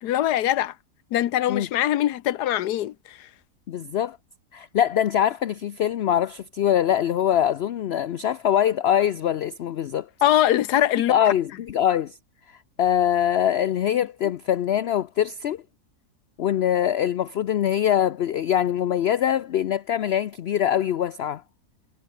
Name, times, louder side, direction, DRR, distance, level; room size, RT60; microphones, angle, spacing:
voice 1, 0.0-0.7 1.1-3.3 10.2-11.1, left 12 dB, 85° left, 1.3 m, -22 dB
voice 2, 3.7-4.2 4.5-10.1 11.1-12.2 12.8-15.6 16.4-21.4, left 10 dB, 65° left, 0.6 m, -23 dB
omnidirectional pair, 1.7 m